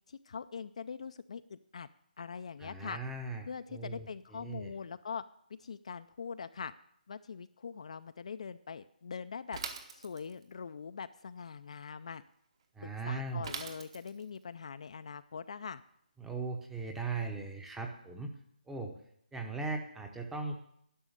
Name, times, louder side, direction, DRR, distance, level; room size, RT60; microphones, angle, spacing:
voice 1, 0.1-1.9 2.2-3.0 3.5-5.2 5.6-6.7 7.1-9.6 9.9-12.2 12.8-15.8, left 6 dB, 45° left, 11 dB, 0.4 m, -43 dB
voice 2, 2.6-4.7 12.7-13.5 16.2-18.4 18.7-18.9 19.3-20.6, right 3 dB, 5° right, 4 dB, 0.8 m, -39 dB
Bicycle / Mechanisms, 9.5-10.5 13.4-14.4, right 5 dB, 35° right, 1.0 m, -42 dB
11.0 x 6.2 x 9.2 m, 0.72 s
hypercardioid pair, 170°, 5 cm